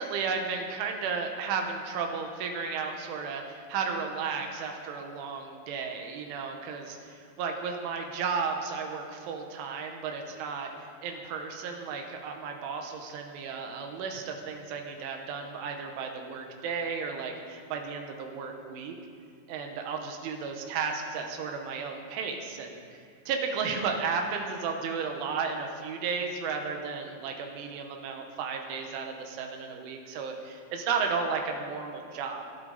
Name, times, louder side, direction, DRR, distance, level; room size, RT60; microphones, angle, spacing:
voice 1, 0.0-10.7 11.0-19.0 19.5-22.8 23.3-32.5, right 5 dB, 85° right, 3 dB, 3.6 m, -33 dB
21.0 x 12.5 x 4.1 m, 2.3 s
omnidirectional pair, 5.4 m